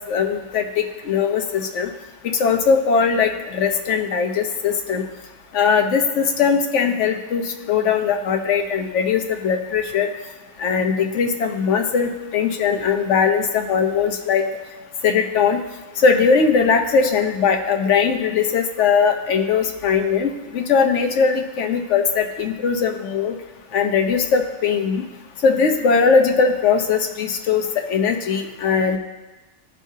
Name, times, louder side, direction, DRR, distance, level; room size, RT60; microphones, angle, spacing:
voice 1, 0.1-0.7 1.0-1.9 2.2-5.0 5.5-10.1 10.6-14.4 15.0-15.6 16.0-23.3 23.7-25.0 25.4-29.0, left 6 dB, 60° left, 5 dB, 1.0 m, -20 dB
16.0 x 5.5 x 2.7 m, 1.1 s
omnidirectional pair, 1.5 m